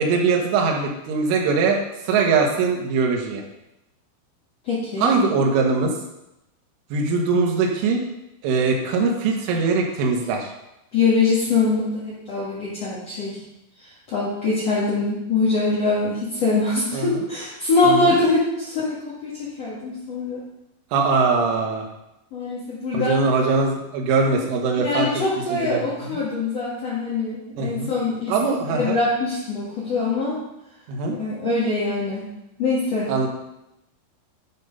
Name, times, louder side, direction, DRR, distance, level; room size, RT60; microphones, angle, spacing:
voice 1, 0.0-1.8 2.1-3.4 5.0-5.9 6.9-8.0 8.4-10.5 16.9-17.2 17.8-18.2 20.9-21.9 22.9-25.1 25.5-26.2 27.6-27.9 28.3-29.0 30.9-31.2 33.1-33.3, right 4 dB, 75° right, 1 dB, 3.6 m, -21 dB
voice 2, 4.6-5.1 10.9-13.4 14.1-18.9 19.2-20.4 22.3-23.2 24.8-30.4 31.1-32.3 32.6-33.1, left 3 dB, 65° left, -9 dB, 1.6 m, -23 dB
11.5 x 4.1 x 5.4 m, 0.89 s
omnidirectional pair, 6.0 m